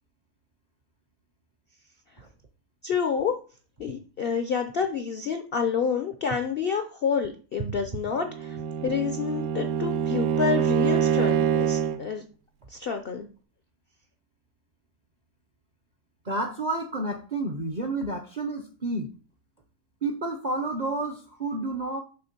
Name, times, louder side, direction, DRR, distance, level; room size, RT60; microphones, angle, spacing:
voice 1, 2.8-3.4 3.8-8.6 8.8-12.2 12.7-13.3, left 6 dB, 65° left, 7 dB, 0.5 m, -28 dB
Bowed string instrument, 8.2-12.1, right 8 dB, 75° right, 1.0 m, -25 dB
voice 2, 16.2-19.1 20.0-22.0, right 2 dB, 50° right, 4 dB, 0.5 m, -30 dB
6.7 x 3.2 x 5.8 m, 0.37 s
omnidirectional pair, 1.6 m